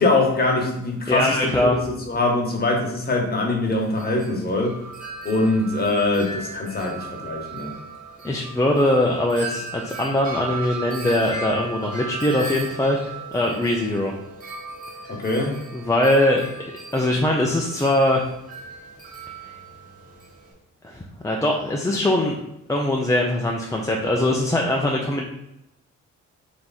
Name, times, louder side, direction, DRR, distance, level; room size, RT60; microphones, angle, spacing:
voice 1, 0.0-1.8 2.1-4.7 5.2-7.7 15.1-15.5, left 2 dB, 30° left, 0 dB, 1.3 m, -23 dB
voice 2, 1.1-1.8 8.2-14.1 15.7-16.4 16.9-18.2 20.8-22.4 22.7-25.2, left 1 dB, 10° left, -1 dB, 0.6 m, -21 dB
Wind chime, 3.7-20.5, right 3 dB, 25° right, 1.6 m, -36 dB
3.6 x 3.1 x 4.1 m, 0.85 s
cardioid pair, 90°, 30 cm